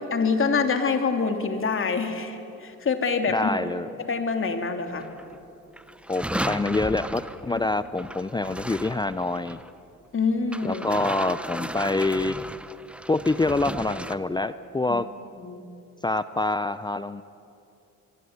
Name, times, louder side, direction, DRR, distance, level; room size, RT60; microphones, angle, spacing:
voice 1, 0.1-3.5 4.0-5.1 7.5-7.7 10.1-10.8 14.9-15.0 15.4-15.6, left 4 dB, 45° left, 6 dB, 3.2 m, -26 dB
voice 2, 3.3-3.9 6.1-9.6 10.6-12.4 13.1-15.1 16.0-17.2, left 2 dB, 15° left, 13 dB, 0.7 m, -26 dB
sound 1, 4.9-5.4 5.7-9.7 10.5-14.2, right 1 dB, 5° right, 1.0 m, -35 dB
25.0 x 23.5 x 9.7 m, 2.6 s
cardioid pair, 90°, 30 cm